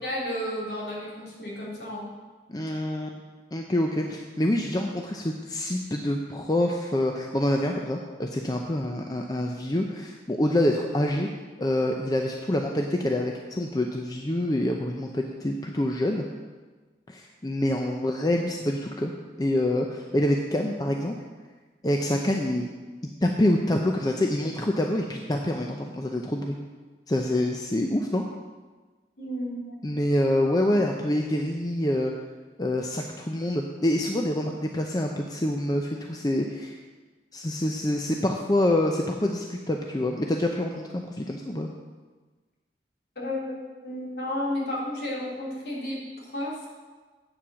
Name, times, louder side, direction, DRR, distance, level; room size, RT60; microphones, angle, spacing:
voice 1, 0.0-2.1 29.2-29.7 43.1-46.6, left 1 dB, 60° left, -5 dB, 3.2 m, -32 dB
voice 2, 2.5-3.2 3.5-11.3 11.6-16.2 17.1-19.1 19.4-21.2 21.8-22.7 23.2-26.6 27.1-28.2 29.8-32.1 32.6-36.7 37.3-41.7, left 1 dB, 20° left, 2 dB, 0.6 m, -26 dB
8.6 x 7.4 x 6.2 m, 1.4 s
head